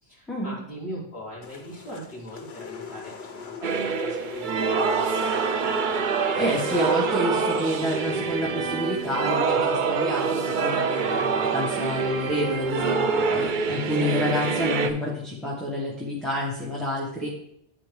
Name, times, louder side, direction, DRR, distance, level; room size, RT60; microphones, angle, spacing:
voice 1, 0.0-5.7, equal, 30° right, -11 dB, 2.6 m, -40 dB
sound 1, 1.4-9.7, left 6 dB, 70° left, 1.1 m, -41 dB
sound 2, 3.6-14.9, right 5 dB, 55° right, 0.7 m, -25 dB
voice 2, 6.4-17.3, left 1 dB, ahead, -6 dB, 1.1 m, -29 dB
10.5 x 4.3 x 3.2 m, 0.74 s
omnidirectional pair, 1.1 m